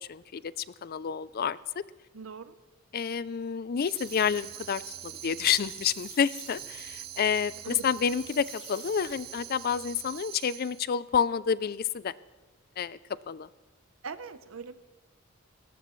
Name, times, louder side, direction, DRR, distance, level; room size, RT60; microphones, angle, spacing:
voice 1, 0.0-1.8 2.9-12.1 12.8-13.0 13.3-13.5, left 7 dB, 45° left, 18 dB, 0.4 m, -29 dB
voice 2, 2.1-2.6 7.6-7.9 14.0-14.8, right 5 dB, 80° right, 12 dB, 0.8 m, -41 dB
sound 1, 3.8-10.1, left 4 dB, 20° left, 1.5 m, -53 dB
Tambourine, 3.8-10.9, right 13 dB, 50° right, 0.5 m, -44 dB
20.5 x 18.0 x 3.2 m, 1.2 s
head